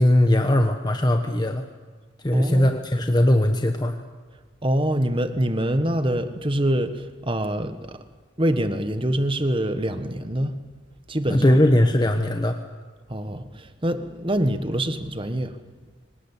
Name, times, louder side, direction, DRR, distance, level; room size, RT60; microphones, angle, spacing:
voice 1, 0.0-1.6 2.2-4.0 11.3-12.6, left 1 dB, 20° left, 5 dB, 1.2 m, -19 dB
voice 2, 2.3-2.7 4.6-8.0 8.4-10.6 11.1-11.6 13.1-15.5, right 1 dB, 25° right, 9 dB, 1.4 m, -25 dB
24.5 x 19.0 x 8.4 m, 1.4 s
head